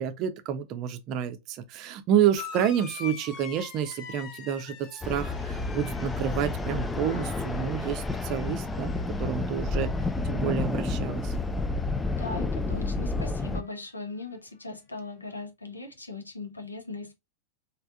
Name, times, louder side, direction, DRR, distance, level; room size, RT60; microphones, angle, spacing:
voice 1, 0.0-9.9 10.2-11.3, right 9 dB, 40° right, 0.5 m, -29 dB
sound 1, 2.4-11.4 11.7-12.4 13.5-13.6, left 6 dB, 35° left, 0.7 m, -46 dB
sound 2, 5.0-13.6, left 3 dB, 10° left, 0.3 m, -30 dB
voice 2, 12.1-17.1, left 3 dB, 80° left, 0.7 m, -39 dB
3.4 x 2.4 x 2.5 m
figure-of-eight pair, 90°, 0 cm